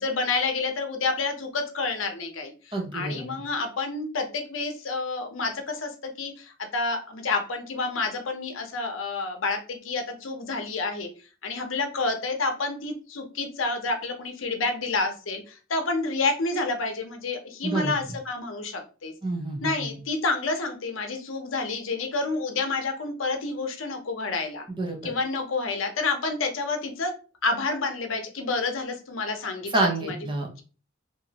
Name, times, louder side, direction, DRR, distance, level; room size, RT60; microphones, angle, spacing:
voice 1, 0.0-2.5 2.9-11.1 11.4-19.1 19.6-24.7 25.0-27.1 27.4-29.7 30.0-30.2, left 3 dB, 80° left, 5 dB, 0.7 m, -29 dB
voice 2, 2.7-3.3 17.6-18.2 19.2-20.0 24.7-25.1 29.7-30.6, right 2 dB, 25° right, 1 dB, 0.7 m, -28 dB
2.8 x 2.5 x 2.8 m, 0.35 s
head